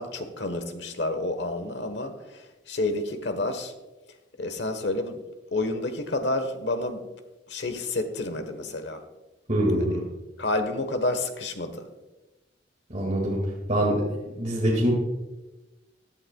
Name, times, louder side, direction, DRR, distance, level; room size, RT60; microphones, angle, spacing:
voice 1, 0.0-3.7 4.4-5.2 5.5-7.0 7.5-9.0 9.8-9.9 10.4-11.8, left 2 dB, 70° left, 8 dB, 1.2 m, -29 dB
voice 2, 9.5-10.0 12.9-13.4 13.7-14.0 14.4-14.9, right 1 dB, 40° right, -3 dB, 2.1 m, -24 dB
16.0 x 11.0 x 2.3 m, 1.1 s
head